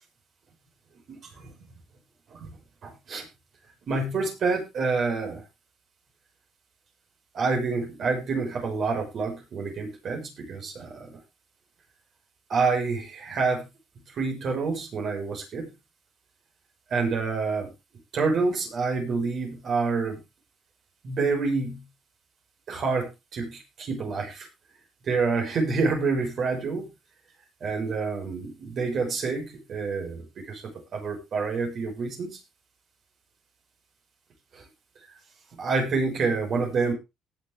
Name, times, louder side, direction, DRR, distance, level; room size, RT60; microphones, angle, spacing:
voice 1, 1.1-1.5 2.3-2.6 2.8-3.2 3.9-5.4 7.3-11.2 12.5-13.7 14.1-15.7 16.9-17.7 18.1-20.2 21.0-21.8 22.7-24.5 25.0-26.9 27.6-32.4 34.5-34.6 35.6-36.9, right 4 dB, 50° right, 2 dB, 6.1 m, -28 dB
18.5 x 7.3 x 3.7 m, 0.26 s
cardioid pair, 110°, 0 cm